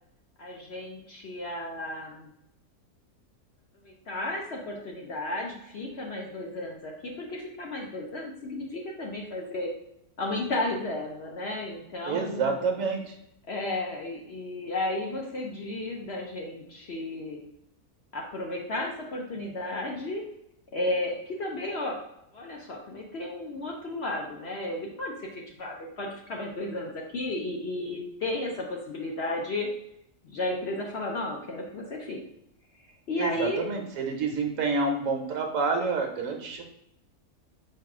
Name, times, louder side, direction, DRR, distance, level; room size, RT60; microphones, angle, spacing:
voice 1, 0.4-2.3 3.8-9.7 10.2-12.6 13.5-17.4 18.1-20.2 20.7-22.0 22.3-29.7 30.2-32.2 33.1-33.7, left 2 dB, 60° left, -1 dB, 0.8 m, -33 dB
voice 2, 12.0-13.2 33.2-36.6, right 4 dB, 65° right, 3 dB, 1.0 m, -28 dB
4.6 x 2.4 x 4.8 m, 0.79 s
omnidirectional pair, 1.6 m